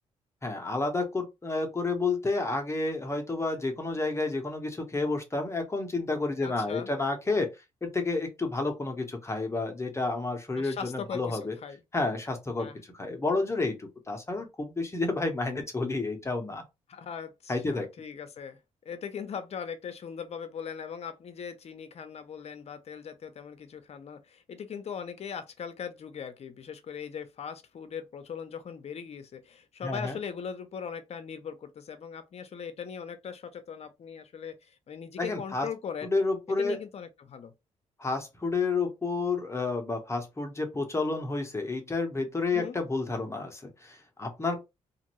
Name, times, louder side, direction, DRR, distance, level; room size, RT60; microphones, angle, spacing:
voice 1, 0.4-7.5 7.8-11.5 11.9-16.6 17.5-17.9 29.8-30.2 35.2-35.7 36.0-36.8 38.0-44.6, left 3 dB, 20° left, 0.9 m, -30 dB
voice 2, 6.4-6.9 10.6-11.8 12.6-12.8 16.9-18.6 18.8-36.1 36.5-37.5 42.5-42.8, left 7 dB, 55° left, 0.7 m, -40 dB
2.6 x 2.5 x 3.0 m
cardioid pair, 75°, 13 cm